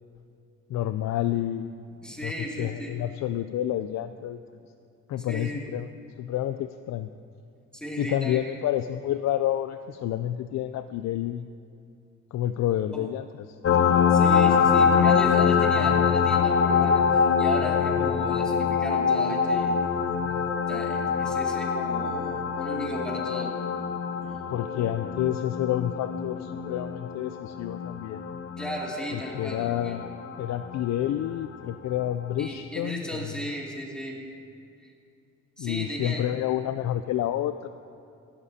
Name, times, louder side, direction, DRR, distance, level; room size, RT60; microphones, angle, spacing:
voice 1, 0.7-1.8 2.1-4.4 5.1-5.9 6.2-7.1 8.0-11.5 12.3-13.6 24.5-28.2 29.1-30.1 30.4-33.3 35.6-37.7, left 12 dB, 65° left, 10 dB, 0.4 m, -29 dB
voice 2, 2.0-3.0 5.3-5.6 7.7-8.6 12.9-13.1 14.1-19.8 20.7-23.5 24.2-24.4 28.6-30.0 32.4-34.2 34.8-34.9 35.6-36.3, equal, 5° left, -3 dB, 2.5 m, -36 dB
sound 1, 13.6-30.9 32.4-32.5, left 6 dB, 45° left, 0.9 m, -24 dB
16.5 x 12.5 x 2.8 m, 2.5 s
cardioid pair, 90°, 30 cm